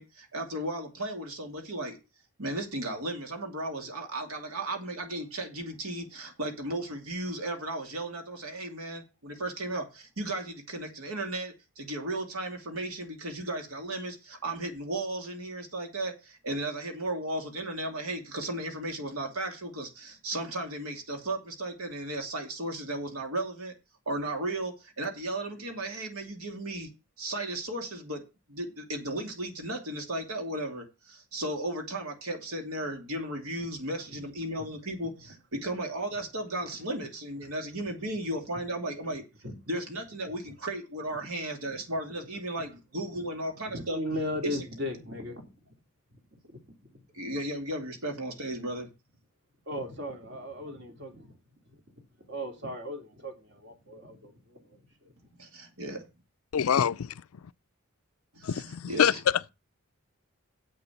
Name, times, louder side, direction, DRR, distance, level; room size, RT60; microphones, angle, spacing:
voice 1, 0.0-2.0 2.4-23.7 24.1-26.9 27.2-28.2 28.5-39.2 39.7-44.0 44.4-44.9 47.1-48.9 55.4-56.1 58.3-59.2, right 1 dB, 80° right, 2.6 m, -35 dB
voice 2, 43.7-45.5 46.3-46.6 49.7-51.1 52.3-54.6 55.0-55.1, left 1 dB, 50° right, 2.8 m, -37 dB
voice 3, 56.5-57.5 58.4-59.5, left 8 dB, 75° left, 0.4 m, -26 dB
8.0 x 6.8 x 7.2 m
head